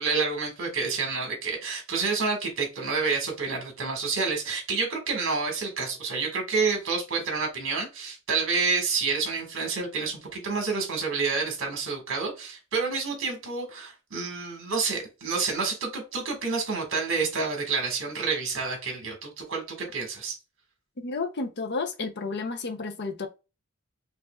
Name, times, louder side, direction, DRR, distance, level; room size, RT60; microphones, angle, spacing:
voice 1, 0.0-20.4, right 4 dB, 65° right, 1.5 m, -29 dB
voice 2, 21.0-23.3, left 4 dB, 55° left, 0.6 m, -31 dB
5.4 x 2.4 x 2.3 m
head